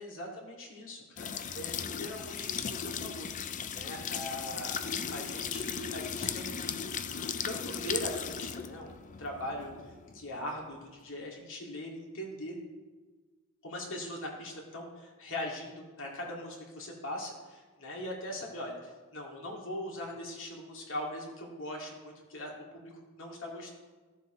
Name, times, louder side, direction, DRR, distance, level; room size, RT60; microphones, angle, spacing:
voice 1, 0.0-6.9 7.4-9.7 10.1-12.6 13.6-23.7, left 1 dB, 60° left, -1 dB, 2.2 m, -41 dB
sound 1, 1.2-10.8, left 7 dB, 35° left, 0.4 m, -37 dB
14.5 x 7.3 x 3.1 m, 1.4 s
head